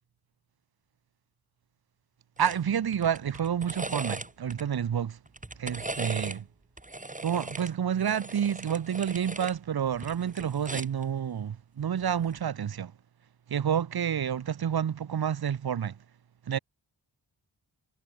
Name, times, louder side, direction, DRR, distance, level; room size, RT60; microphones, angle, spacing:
sound 1, 2.4-2.6 2.9-4.6 5.3-6.4 6.8-9.6 9.9-11.0 12.2-12.4, right 2 dB, 15° right, 5.0 m, -38 dB
voice 1, 2.4-5.2 5.6-6.4 7.2-12.9 13.5-16.0 16.5-16.6, right 8 dB, 55° right, 1.1 m, -29 dB
wide cardioid pair, 120°, 44 cm